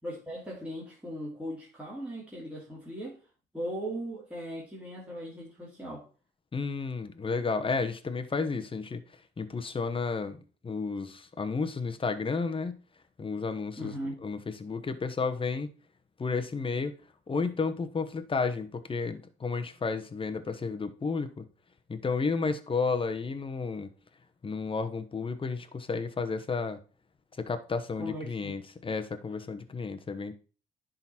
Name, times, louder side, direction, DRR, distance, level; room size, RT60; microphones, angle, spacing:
voice 1, 0.0-3.2 3.5-6.1 13.8-14.2 27.9-28.5, right 1 dB, 5° right, 2.6 m, -38 dB
voice 2, 6.5-9.0 9.4-10.4 10.6-12.8 13.2-13.9 14.2-15.7 16.2-16.9 17.3-21.4 21.9-23.9 24.4-26.8 27.4-30.3, left 4 dB, 25° left, 1.0 m, -32 dB
10.5 x 3.9 x 4.3 m
cardioid pair, 90°, 20 cm